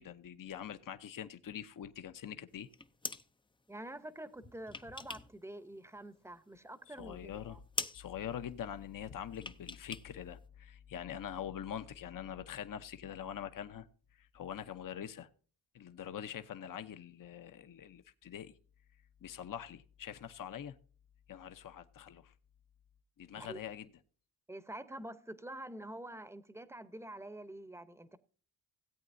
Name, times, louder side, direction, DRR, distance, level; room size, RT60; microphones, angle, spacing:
voice 1, 0.0-2.7 6.9-7.6 7.9-13.9 14.2-15.3 15.7-18.5 19.2-20.8 21.3-22.3 23.2-23.9, left 9 dB, 55° left, 0.9 m, -44 dB
sound 1, 2.6-3.3 4.3-5.4 5.7-6.6 6.9-7.0 7.3-7.5 7.7-8.0 9.3-10.1 10.3-10.4, left 3 dB, 15° left, 0.5 m, -42 dB
voice 2, 3.7-7.6 23.3-23.6 24.5-28.2, right 1 dB, 5° right, 0.8 m, -47 dB
17.0 x 8.5 x 2.7 m
cardioid pair, 105°, 40 cm